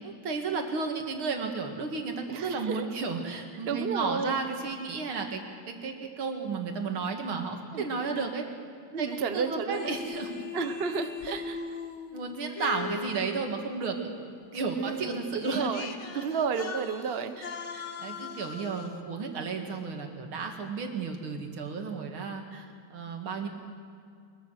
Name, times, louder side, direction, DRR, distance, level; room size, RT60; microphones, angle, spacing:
voice 1, 0.0-8.5 9.0-10.5 11.2-11.4 12.1-14.1 14.5-15.7 16.1-16.2 17.4-22.7 22.9-23.5, right 4 dB, 75° right, 4 dB, 2.9 m, -33 dB
voice 2, 2.3-2.8 3.6-4.3 7.7-7.9 8.2-8.3 8.9-10.0 10.5-11.6 14.8-17.4, right 6 dB, 40° right, 9 dB, 0.9 m, -32 dB
sound 1, 9.7-13.8 15.0-15.1 15.4-19.0, left 6 dB, 40° left, 1.2 m, -40 dB
22.5 x 22.0 x 6.5 m, 2.3 s
omnidirectional pair, 2.3 m